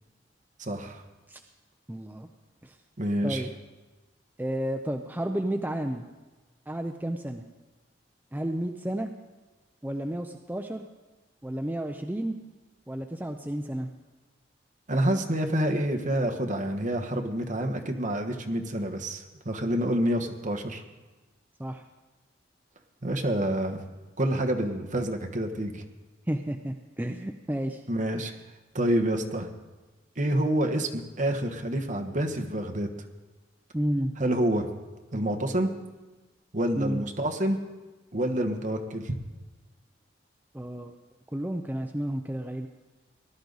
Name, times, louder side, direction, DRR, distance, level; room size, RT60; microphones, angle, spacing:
voice 1, 0.6-1.0 3.0-3.4 14.9-20.8 23.0-23.8 24.2-25.8 27.9-28.3 28.7-29.5 30.2-32.9 34.2-34.7 35.1-35.7 36.5-37.6 38.1-39.1, right 1 dB, 45° right, 5 dB, 1.3 m, -27 dB
voice 2, 1.9-2.3 2.6-2.8 3.2-3.5 4.4-6.0 6.7-7.4 8.3-9.1 9.8-10.9 11.4-12.4 12.9-13.9 21.6-21.8 26.3-27.8 33.7-34.1 36.8-37.0 40.5-40.9 41.3-42.7, right 1 dB, 10° right, 5 dB, 0.5 m, -31 dB
19.0 x 12.0 x 4.0 m, 1.2 s
head